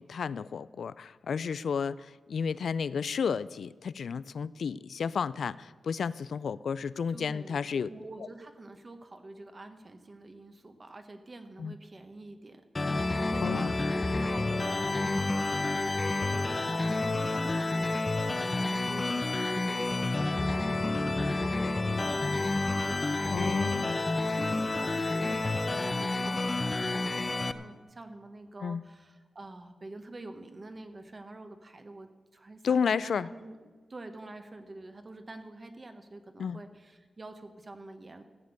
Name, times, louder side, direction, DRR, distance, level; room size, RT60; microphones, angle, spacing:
voice 1, 0.0-7.9 11.6-11.7 13.4-13.7 23.3-24.0 28.6-28.8 32.6-33.3 36.4-36.6, left 6 dB, 75° left, 18 dB, 0.3 m, -32 dB
voice 2, 7.1-12.6 13.2-23.7 24.4-33.6 33.9-38.2, right 2 dB, 30° right, 7 dB, 1.1 m, -47 dB
sound 1, 12.7-27.5, left 2 dB, 25° left, 0.5 m, -29 dB
14.0 x 7.5 x 8.1 m, 1.4 s
wide cardioid pair, 125°, 0 cm